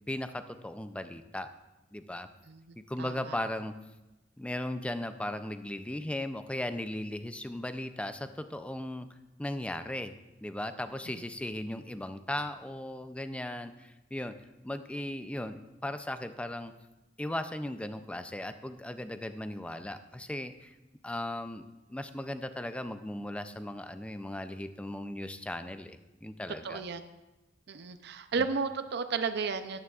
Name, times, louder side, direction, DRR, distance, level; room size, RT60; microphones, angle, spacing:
voice 1, 0.1-1.5 1.9-2.3 2.8-3.8 4.4-9.1 9.4-10.1 10.4-14.4 14.6-16.7 17.2-20.8 21.0-26.8, left 1 dB, 5° left, 10 dB, 0.4 m, -37 dB
voice 2, 3.0-3.4 26.6-27.0 27.7-29.8, right 5 dB, 60° right, 9 dB, 0.5 m, -33 dB
12.5 x 9.4 x 2.4 m, 1.0 s
head